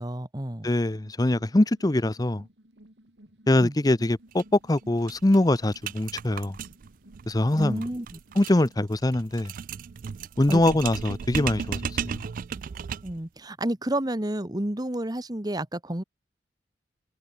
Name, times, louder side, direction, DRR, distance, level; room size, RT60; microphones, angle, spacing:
voice 1, 0.0-0.7 3.6-3.7 7.5-8.2 10.5-10.8 13.0-16.0, right 1 dB, 20° right, 1.4 m, -30 dB
voice 2, 0.6-2.4 3.5-6.6 7.3-7.8 8.4-9.5 10.4-12.2, left 1 dB, 20° left, 0.6 m, -23 dB
sound 1, 0.9-10.6, right 1 dB, 85° right, 4.4 m, -56 dB
sound 2, 4.3-4.4 4.7-4.8 5.1-13.2, right 7 dB, 50° right, 0.3 m, -35 dB
head